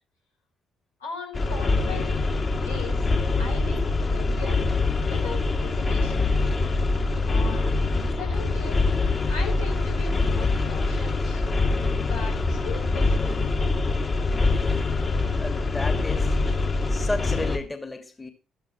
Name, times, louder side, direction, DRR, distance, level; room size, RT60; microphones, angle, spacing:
voice 1, 1.0-2.2 2.6-3.1 3.4-4.6 5.1-6.3 7.3-11.4 12.0-13.5, left 4 dB, 85° left, 6.6 m, -39 dB
sound 1, 1.3-17.6, left 3 dB, 35° left, 2.7 m, -24 dB
voice 2, 15.4-16.4 16.9-18.3, left 2 dB, 20° left, 2.4 m, -33 dB
13.5 x 13.0 x 3.1 m
figure-of-eight pair, 45°, 0 cm